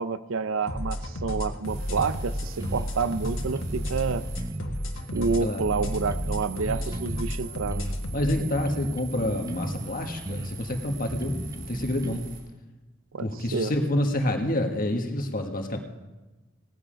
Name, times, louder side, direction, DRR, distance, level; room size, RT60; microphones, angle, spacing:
voice 1, 0.0-4.2 5.1-7.9 13.1-13.7, right 4 dB, 90° right, 13 dB, 0.6 m, -29 dB
sound 1, 0.7-8.4, equal, 80° left, 1.5 m, -32 dB
sound 2, 1.6-12.4, right 4 dB, 65° right, 4.3 m, -44 dB
sound 3, 2.0-2.2 2.6-4.8 5.1-7.4 7.7-9.9 10.2-12.2, right 1 dB, 15° right, 0.4 m, -36 dB
voice 2, 8.1-12.3 13.2-15.8, left 1 dB, 45° left, 4 dB, 1.4 m, -28 dB
17.0 x 9.6 x 5.1 m, 1.1 s
head